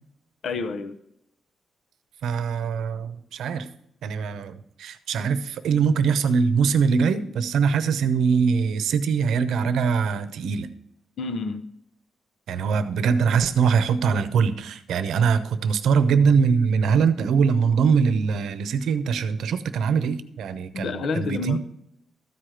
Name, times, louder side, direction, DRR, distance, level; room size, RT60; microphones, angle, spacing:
voice 1, 0.4-1.0 11.2-11.6 20.7-21.6, left 4 dB, 55° left, 0.7 m, -28 dB
voice 2, 2.2-3.7 4.0-10.7 12.5-21.6, right 6 dB, 85° right, 0.7 m, -22 dB
13.5 x 5.0 x 7.7 m
wide cardioid pair, 175°, 0 cm